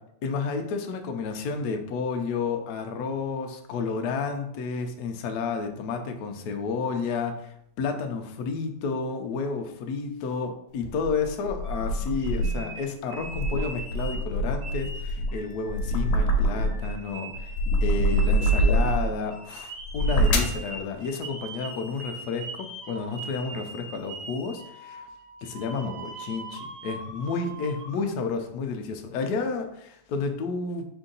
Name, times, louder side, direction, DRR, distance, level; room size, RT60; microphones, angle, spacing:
voice 1, 0.2-7.3 7.8-17.5 17.8-25.0 25.4-30.8, left 4 dB, 70° left, 4 dB, 0.9 m, -31 dB
sound 1, 10.8-12.7 13.2-16.9 17.3-19.2 19.8-20.6, right 1 dB, 90° left, 1.5 m, -25 dB
sound 2, 11.6-14.3 14.6-28.0, right 2 dB, 85° right, 1.9 m, -41 dB
4.5 x 2.6 x 3.8 m, 0.74 s
omnidirectional pair, 2.3 m